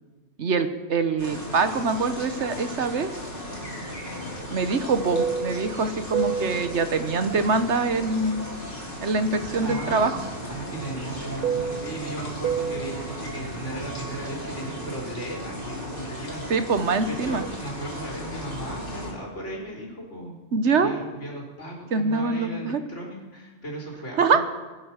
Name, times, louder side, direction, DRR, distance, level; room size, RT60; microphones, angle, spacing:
voice 1, 0.4-3.1 4.5-8.5 9.0-10.2 16.5-17.4 20.5-20.9 21.9-22.8 24.2-24.4, right 4 dB, 75° right, 9 dB, 1.4 m, -24 dB
sound 1, 1.2-19.1, left 1 dB, 45° left, 3.7 m, -36 dB
Fixed-wing aircraft airplane, 3.5-8.9 9.2-15.1, right 7 dB, 45° right, 0.9 m, -32 dB
voice 2, 9.6-10.2 10.5-16.6 17.1-20.4 20.8-24.4, right 1 dB, 80° left, -2 dB, 4.2 m, -37 dB
22.0 x 10.5 x 5.9 m, 1.3 s
omnidirectional pair, 1.2 m